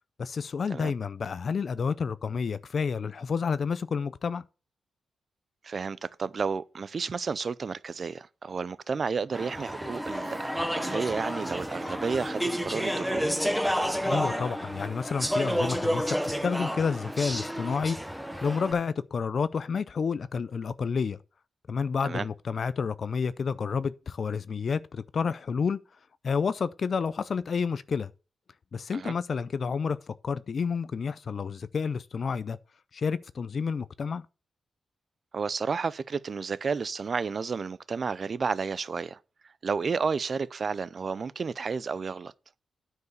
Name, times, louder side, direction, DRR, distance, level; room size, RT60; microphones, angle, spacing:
voice 1, 0.2-4.4 14.0-18.0 18.4-21.2 21.7-25.8 26.2-28.1 28.7-32.6 32.9-34.3, left 5 dB, 50° left, 0.4 m, -30 dB
voice 2, 5.6-13.3 22.0-22.3 28.9-29.1 35.3-39.2 39.6-42.3, right 5 dB, 45° right, 0.5 m, -31 dB
Speech / Chatter, 9.3-18.7, equal, ahead, 0.9 m, -30 dB
9.6 x 4.7 x 6.5 m
cardioid pair, 110°, 0 cm